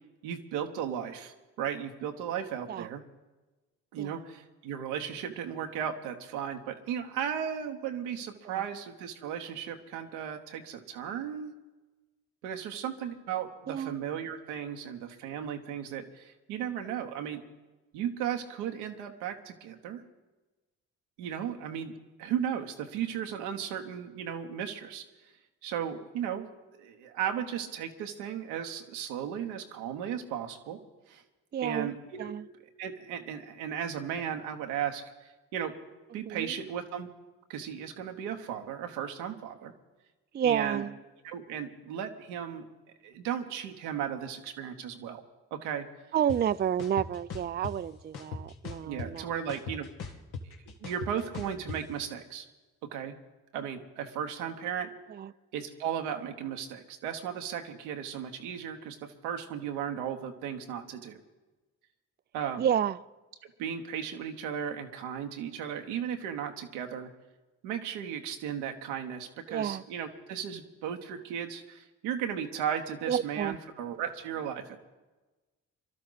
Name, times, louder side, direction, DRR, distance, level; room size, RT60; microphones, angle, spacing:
voice 1, 0.2-3.0 3.9-11.5 12.4-17.4 17.9-20.0 21.2-25.0 25.6-26.5 26.8-30.8 31.1-31.2 31.6-32.3 32.8-35.7 36.1-37.1 37.5-39.7 40.4-40.8 41.2-42.6 43.0-45.2 45.5-45.9 48.8-50.1 50.8-52.5 52.9-53.2 53.5-54.9 55.5-61.2 62.3-62.7 63.6-67.1 67.6-74.8, right 8 dB, 90° right, 5 dB, 1.1 m, -35 dB
voice 2, 31.5-31.9 32.2-32.5 36.3-36.6 40.3-41.0 46.1-49.3 55.1-55.3 62.6-63.0 69.5-69.8 73.1-73.6, right 9 dB, 25° right, 15 dB, 0.4 m, -30 dB
sound 1, 46.3-46.4 46.8-47.7 48.1-49.2 49.5-51.8, left 5 dB, 75° left, 1.5 m, -39 dB
23.0 x 12.5 x 4.0 m, 1.2 s
hypercardioid pair, 45°, 39 cm